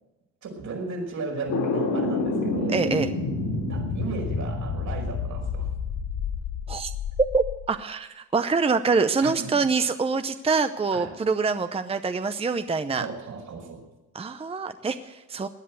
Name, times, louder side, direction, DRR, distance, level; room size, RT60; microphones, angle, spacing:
voice 1, 0.4-2.8 3.7-5.7 9.2-9.6 10.9-11.1 13.0-13.8, right 4 dB, 70° right, 0 dB, 5.3 m, -35 dB
sound 1, 1.5-7.6, left 3 dB, 80° left, 4.4 m, -28 dB
voice 2, 2.7-3.1 6.7-6.9 7.3-13.1 14.1-15.5, right 4 dB, 20° right, 10 dB, 0.7 m, -25 dB
18.0 x 10.0 x 8.0 m, 1.0 s
cardioid pair, 90°, 30 cm